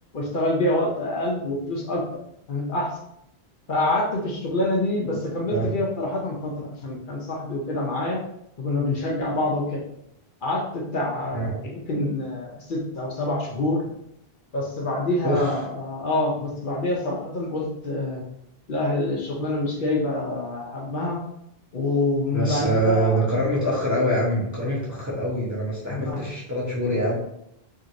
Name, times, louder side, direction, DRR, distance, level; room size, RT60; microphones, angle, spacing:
voice 1, 0.1-2.0 2.5-3.0 3.7-8.2 8.6-9.8 10.4-13.8 14.5-18.2 18.7-21.2 21.7-23.2 25.9-26.3, left 2 dB, 55° left, -2 dB, 0.7 m, -26 dB
voice 2, 22.3-27.2, right 1 dB, 20° right, -6 dB, 0.5 m, -24 dB
2.9 x 2.8 x 2.5 m, 0.77 s
omnidirectional pair, 1.1 m